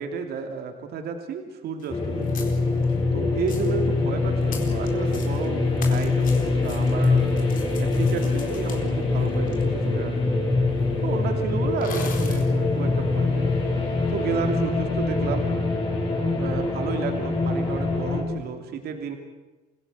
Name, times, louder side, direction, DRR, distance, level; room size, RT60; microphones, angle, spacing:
voice 1, 0.0-2.5 3.1-7.3 7.8-10.3 11.0-13.6 14.1-15.5 16.3-19.2, right 6 dB, 70° right, 5 dB, 3.0 m, -32 dB
sound 1, 1.8-1.9 2.2-3.0 3.4-3.8 4.4-5.5 5.8-9.6 10.5-10.6 10.8-10.9 11.8-12.5, left 6 dB, 55° left, 4.2 m, -42 dB
Creepy Horror Ambient - Truth, 1.9-18.2, left 3 dB, 30° left, 7.1 m, -24 dB
27.0 x 17.0 x 8.3 m, 1.2 s
cardioid pair, 110°, 17 cm